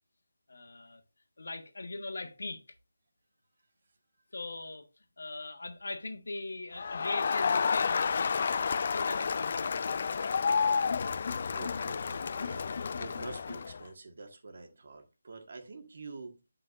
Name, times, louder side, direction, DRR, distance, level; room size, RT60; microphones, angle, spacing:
voice 1, 0.5-1.0 1.4-2.6 4.3-4.9 5.2-8.3 8.8-10.0, left 2 dB, 70° left, 1.5 m, -40 dB
Crowd, 6.8-13.8, left 5 dB, 45° left, 0.3 m, -30 dB
voice 2, 11.5-16.3, right 3 dB, 55° right, 1.8 m, -46 dB
8.8 x 5.8 x 2.6 m
figure-of-eight pair, 160°, 0 cm